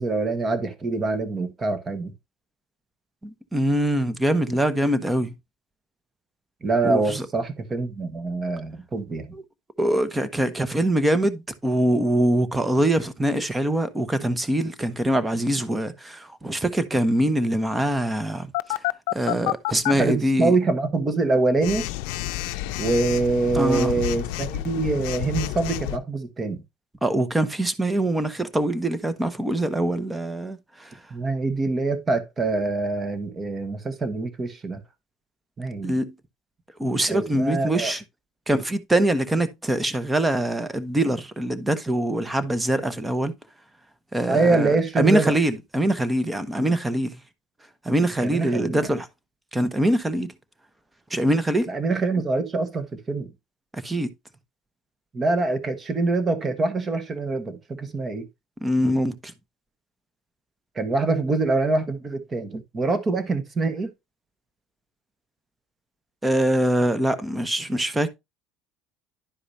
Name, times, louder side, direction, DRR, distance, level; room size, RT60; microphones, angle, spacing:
voice 1, 0.0-2.1 6.6-9.3 19.9-21.9 22.8-26.6 31.1-34.8 35.6-35.9 37.1-37.9 44.3-45.3 48.2-49.0 51.7-53.3 55.1-58.3 60.7-63.9, right 3 dB, 25° right, 1.3 m, -25 dB
voice 2, 3.5-5.3 6.8-7.2 9.3-9.4 9.8-18.8 19.1-20.6 23.5-24.0 27.0-30.9 35.8-36.1 36.8-38.0 38.5-43.3 44.1-47.2 47.8-49.1 49.5-50.3 51.1-51.7 53.7-54.1 58.6-59.3 66.2-68.1, right 1 dB, 10° right, 0.9 m, -23 dB
Telephone, 18.5-19.9 21.6-26.0, left 16 dB, 85° left, 0.5 m, -29 dB
11.5 x 4.8 x 2.7 m
cardioid pair, 125°, 0 cm